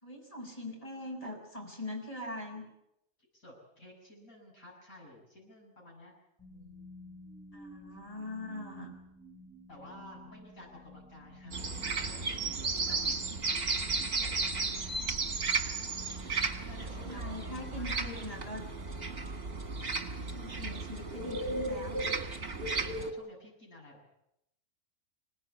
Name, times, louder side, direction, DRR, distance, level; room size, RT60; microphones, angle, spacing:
voice 1, 0.0-2.6 7.5-8.9 12.9-13.2 16.7-18.6 20.2-22.2, left 1 dB, 25° left, 1 dB, 6.8 m, -42 dB
voice 2, 3.3-6.1 6.5-6.9 7.9-8.0 9.7-11.7 12.0-13.0 14.2-15.0 16.7-18.1 22.6-24.1, left 1 dB, 85° left, -3 dB, 8.0 m, -53 dB
sound 1, 6.4-18.6, left 1 dB, 5° left, 4.7 m, -53 dB
sound 2, 11.5-23.1, right 3 dB, 45° right, 2.1 m, -34 dB
25.5 x 19.0 x 8.5 m, 0.82 s
omnidirectional pair, 1.4 m